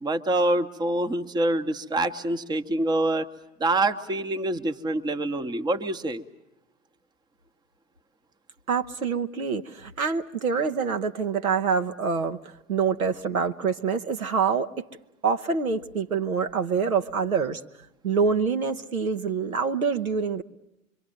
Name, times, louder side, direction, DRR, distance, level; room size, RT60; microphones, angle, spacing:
voice 1, 0.0-3.3 3.6-6.2, right 2 dB, 10° right, 10 dB, 0.9 m, -26 dB
voice 2, 8.7-12.4 12.7-14.7 15.2-17.6 18.0-20.4, right 5 dB, 80° right, 7 dB, 1.1 m, -26 dB
25.0 x 24.0 x 7.8 m, 0.92 s
figure-of-eight pair, 90°, 41 cm